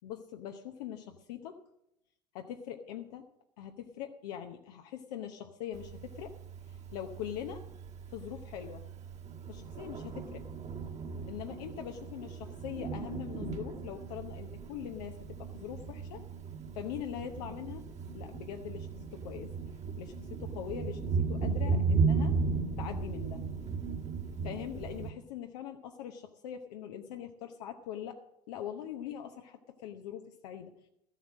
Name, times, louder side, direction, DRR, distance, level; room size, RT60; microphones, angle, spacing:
voice 1, 0.0-1.6 2.3-3.2 3.6-6.3 6.7-7.6 8.1-8.8 9.5-10.4 11.3-16.2 16.7-17.8 18.1-19.5 20.0-22.3 22.8-23.4 24.4-28.2 28.5-30.9, left 10 dB, 70° left, 4 dB, 0.9 m, -42 dB
Thunder, 5.7-25.1, right 4 dB, 35° right, 1.6 m, -36 dB
13.5 x 7.9 x 6.3 m, 0.82 s
hypercardioid pair, 70°, 21 cm